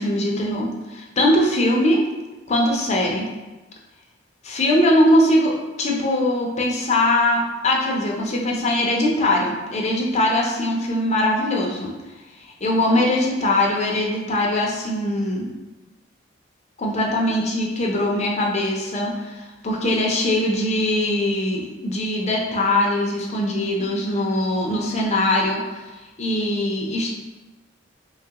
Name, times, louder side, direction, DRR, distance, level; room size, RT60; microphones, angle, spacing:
voice 1, 0.0-2.0 2.5-3.3 4.4-11.9 12.6-15.4 16.8-25.8 26.2-27.1, left 1 dB, 35° left, -1 dB, 0.5 m, -21 dB
3.1 x 2.3 x 2.8 m, 1.1 s
head